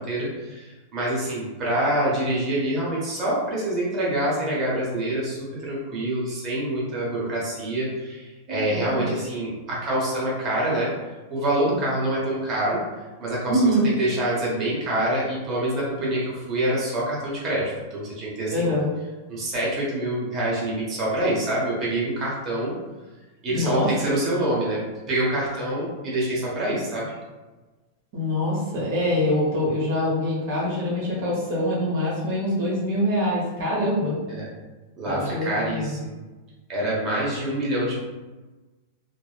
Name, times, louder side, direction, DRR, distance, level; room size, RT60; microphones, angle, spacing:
voice 1, 0.0-10.9 11.3-12.8 13.2-18.8 19.3-22.8 23.4-24.8 25.1-27.1 34.3-34.5 35.0-36.1 36.7-38.0, right 1 dB, 40° right, -5 dB, 1.0 m, -26 dB
voice 2, 8.5-9.2 13.5-13.9 18.5-18.9 23.5-24.1 28.1-34.1 35.0-35.9, equal, 65° right, -6 dB, 0.9 m, -24 dB
2.8 x 2.0 x 2.3 m, 1.2 s
hypercardioid pair, 110°, 0 cm